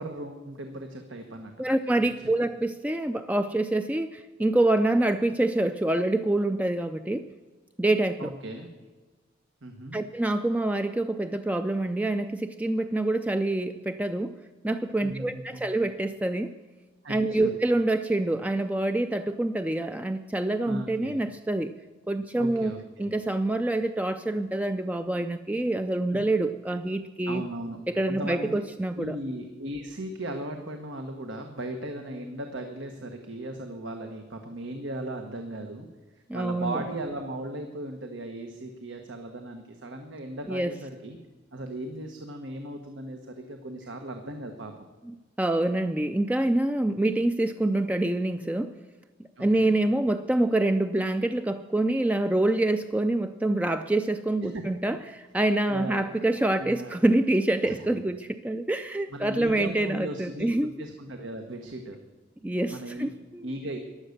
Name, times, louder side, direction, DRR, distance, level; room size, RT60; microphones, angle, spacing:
voice 1, 0.0-1.5 1.9-2.3 8.2-8.7 9.6-10.0 15.0-15.7 17.0-17.5 20.6-21.2 22.4-23.1 26.1-26.2 27.3-27.8 28.1-28.6 29.0-35.9 36.1-41.2 41.5-44.7 49.4-49.8 54.5-54.6 55.7-56.1 56.6-57.0 57.6-57.9 59.1-62.0 62.7-63.2 63.4-63.8, right 1 dB, 85° right, 5 dB, 1.3 m, -37 dB
voice 2, 1.6-7.3 7.8-8.3 9.9-14.3 14.6-16.5 17.1-21.7 22.1-27.4 27.9-29.2 36.3-36.8 40.5-40.7 45.1-48.7 49.4-60.7 62.4-63.5, right 1 dB, 10° right, 8 dB, 0.4 m, -26 dB
15.5 x 11.0 x 6.6 m, 1.3 s
head